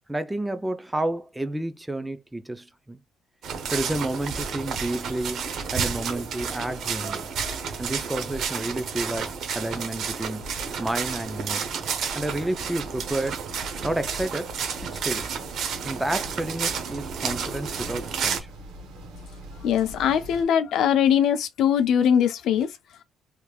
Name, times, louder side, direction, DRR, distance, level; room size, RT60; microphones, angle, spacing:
voice 1, 0.1-3.0 3.7-7.3 7.8-10.4 10.8-11.7 12.1-13.5 13.8-14.5 14.9-15.3 15.8-18.5, right 1 dB, 10° right, 0.4 m, -30 dB
sound 1, 3.4-18.4, right 6 dB, 65° right, 0.8 m, -31 dB
sound 2, 12.1-20.4, equal, 85° right, 1.0 m, -43 dB
voice 2, 19.6-23.0, left 8 dB, 70° left, 0.5 m, -22 dB
3.3 x 3.2 x 2.3 m
cardioid pair, 110°, 0 cm